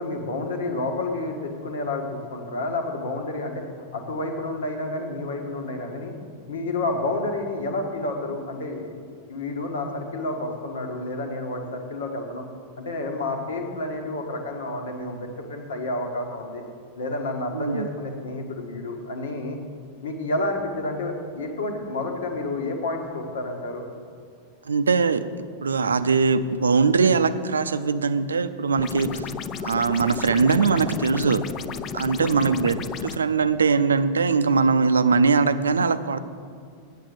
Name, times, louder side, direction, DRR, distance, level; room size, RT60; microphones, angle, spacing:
voice 1, 0.0-3.6 3.9-6.1 6.5-8.9 9.3-12.4 12.8-16.6 17.0-19.6 20.0-23.8 32.2-32.5, left 2 dB, 65° left, 3 dB, 1.6 m, -30 dB
voice 2, 17.5-17.9 24.7-25.2 25.6-29.3 29.6-31.4 31.9-32.8 33.0-36.2, right 4 dB, 70° right, 13 dB, 0.5 m, -21 dB
sound 1, 28.8-33.2, left 7 dB, 30° left, 0.5 m, -34 dB
9.1 x 8.7 x 6.6 m, 2.2 s
figure-of-eight pair, 90°, 0 cm